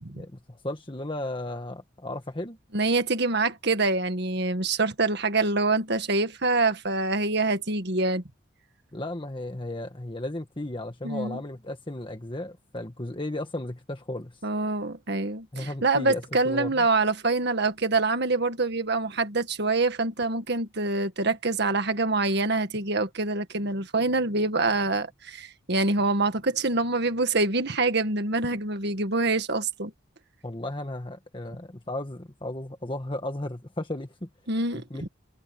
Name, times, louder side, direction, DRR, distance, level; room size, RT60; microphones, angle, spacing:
voice 1, 0.1-2.6 8.9-14.4 15.5-16.9 30.4-34.3 34.7-35.1, left 1 dB, 25° left, 1.5 m, -35 dB
voice 2, 2.7-8.2 11.0-11.4 14.4-29.9 34.5-35.1, right 3 dB, 55° right, 1.8 m, -25 dB
head